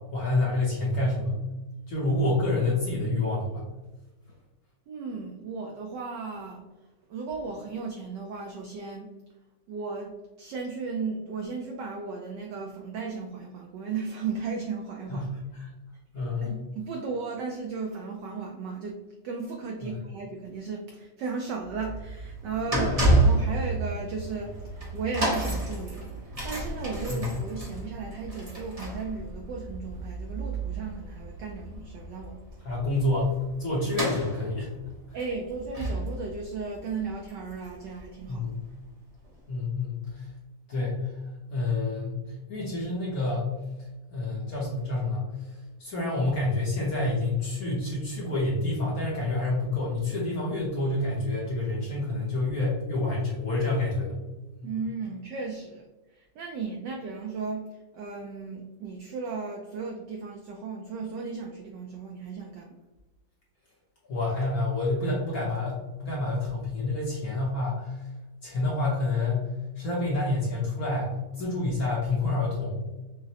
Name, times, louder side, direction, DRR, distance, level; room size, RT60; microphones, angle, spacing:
voice 1, 0.1-1.4 1.9-3.7 15.1-15.7 16.1-16.6 19.8-19.9 22.7-23.1 27.1-27.2 32.6-33.3 33.6-34.7 38.3-38.6 39.5-40.2 40.7-41.1 41.5-43.5 44.1-45.2 45.8-54.1 54.6-54.7 64.1-68.0 68.4-72.8, left 2 dB, 60° left, -5 dB, 1.0 m, -28 dB
voice 2, 4.9-6.6 7.1-9.1 9.7-15.2 16.4-19.0 19.2-32.4 35.1-38.5 54.6-55.9 56.1-57.7 57.9-62.8, right 4 dB, 80° right, 1 dB, 0.9 m, -35 dB
sound 1, 21.6-38.6 39.2-39.3, right 2 dB, 65° right, 0.3 m, -30 dB
6.0 x 2.1 x 2.8 m, 1.1 s
omnidirectional pair, 2.4 m